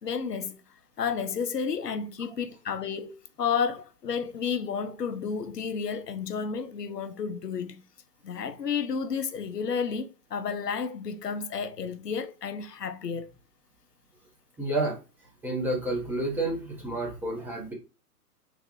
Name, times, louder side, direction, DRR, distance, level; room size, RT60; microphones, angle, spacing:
voice 1, 0.0-0.6 1.0-7.8 8.2-13.3, left 6 dB, 85° left, 0.7 m, -31 dB
voice 2, 14.6-15.0 15.4-17.7, right 2 dB, 5° right, 0.8 m, -30 dB
3.8 x 2.4 x 3.0 m
figure-of-eight pair, 120°, 47 cm